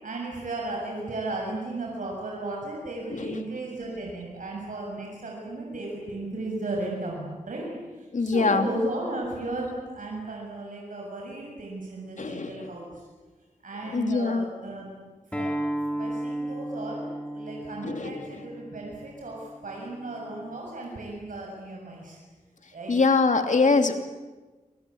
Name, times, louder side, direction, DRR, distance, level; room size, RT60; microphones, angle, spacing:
voice 1, 0.0-7.7 8.0-12.9 13.6-14.9 15.3-15.6 15.9-22.2 22.7-23.0, right 2 dB, 90° right, -2 dB, 6.9 m, -35 dB
voice 2, 8.1-8.7 12.2-12.7 13.9-14.4 17.8-18.2 22.9-24.0, left 4 dB, 70° left, 7 dB, 2.8 m, -23 dB
Acoustic guitar, 15.3-20.5, right 1 dB, 10° left, 4.6 m, -34 dB
29.0 x 24.0 x 8.7 m, 1.2 s
wide cardioid pair, 80°, 13 cm